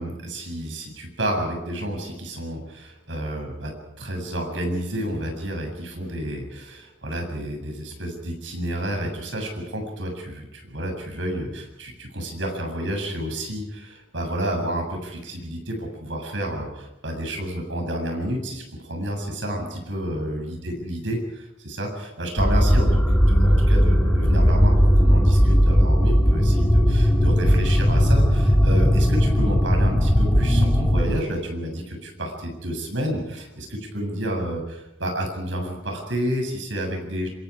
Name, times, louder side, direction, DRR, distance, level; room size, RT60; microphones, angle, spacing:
voice 1, 0.0-3.7 4.0-37.3, right 1 dB, 80° right, 2 dB, 7.8 m, -30 dB
sound 1, 22.4-31.0, equal, 10° left, 3.3 m, -17 dB
26.5 x 25.5 x 5.0 m, 0.95 s
head